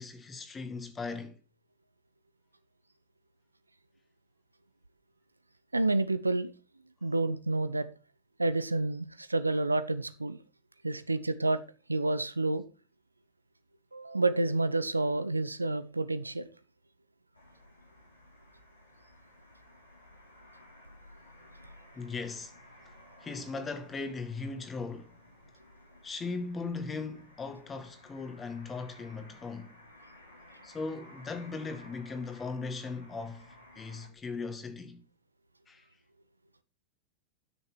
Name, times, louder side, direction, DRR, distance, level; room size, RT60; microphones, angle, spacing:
voice 1, 0.0-1.4 22.0-22.5 23.2-25.1 26.0-29.7 30.6-35.0 35.7-35.8, left 4 dB, 20° left, 2.1 m, -38 dB
voice 2, 5.7-6.5 7.0-7.9 8.4-10.4 10.8-11.6 11.9-12.6 13.9-16.4, right 2 dB, 80° right, 0.7 m, -29 dB
sound 1, 17.3-34.1, left 1 dB, 85° left, 4.2 m, -56 dB
12.0 x 6.6 x 4.4 m
figure-of-eight pair, 90°, 0 cm